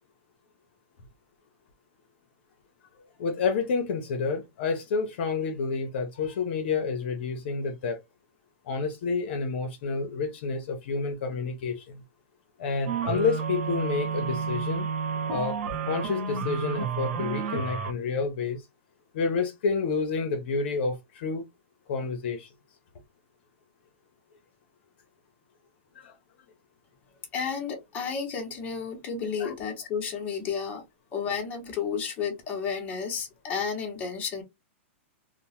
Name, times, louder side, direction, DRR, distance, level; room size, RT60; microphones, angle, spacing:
voice 1, 3.2-8.0 8.6-12.0 12.6-14.9 15.3-15.6 15.9-18.6 19.1-21.4 21.9-22.5 26.0-26.1 29.4-29.5, left 4 dB, 55° left, 0.6 m, -29 dB
sound 1, 12.9-17.9, right 6 dB, 65° right, 0.6 m, -31 dB
voice 2, 27.3-30.8 31.1-34.4, left 6 dB, 20° left, 0.8 m, -32 dB
2.9 x 2.0 x 2.9 m
supercardioid pair, 170°, 7 cm